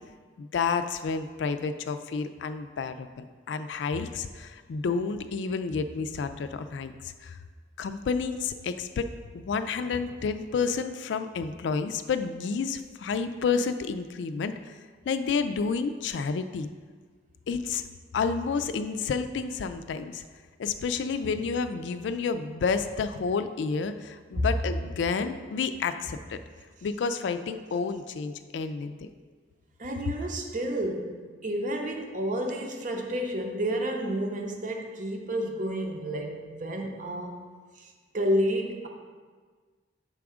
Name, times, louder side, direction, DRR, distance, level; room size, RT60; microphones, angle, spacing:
voice 1, 0.4-7.4 7.8-14.7 15.1-16.7 17.5-17.8 18.1-20.2 20.6-26.4 26.8-29.1, left 5 dB, 80° left, 10 dB, 0.3 m, -30 dB
voice 2, 29.8-37.4 37.7-38.9, equal, 45° right, 2 dB, 0.8 m, -30 dB
6.8 x 3.5 x 4.9 m, 1.5 s
head